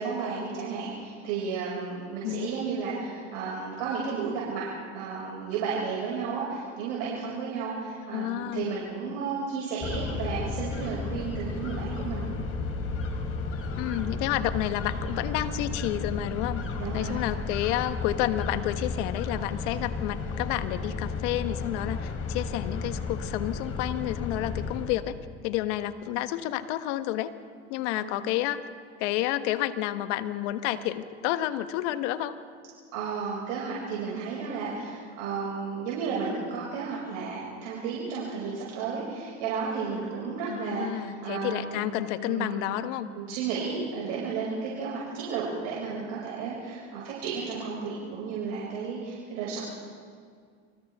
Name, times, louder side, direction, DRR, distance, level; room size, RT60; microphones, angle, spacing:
voice 1, 0.0-4.7 4.9-12.2 16.8-17.2 27.9-28.1 32.9-41.9 42.3-42.6 43.1-49.6, right 5 dB, 75° right, -5 dB, 5.9 m, -33 dB
voice 2, 8.1-8.8 13.8-16.6 16.9-25.2 25.4-27.3 27.7-28.6 29.0-32.3 40.5-43.1, left 14 dB, 70° left, 11 dB, 1.3 m, -30 dB
sound 1, 9.8-24.9, left 4 dB, 40° left, 3.3 m, -33 dB
30.0 x 25.0 x 3.6 m, 2.1 s
supercardioid pair, 100°, 37 cm